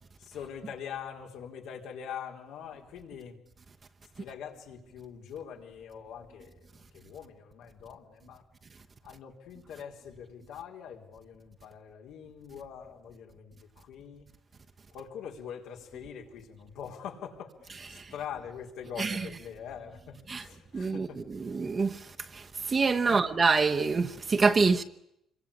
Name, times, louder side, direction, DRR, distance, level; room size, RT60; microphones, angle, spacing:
voice 1, 0.2-3.4 4.2-8.4 9.0-14.3 14.9-21.2 23.1-23.3, left 8 dB, 85° left, 4.2 m, -43 dB
voice 2, 20.7-22.0 22.3-24.8, right 4 dB, 25° right, 1.0 m, -26 dB
27.0 x 23.0 x 8.7 m
cardioid pair, 170°, 0 cm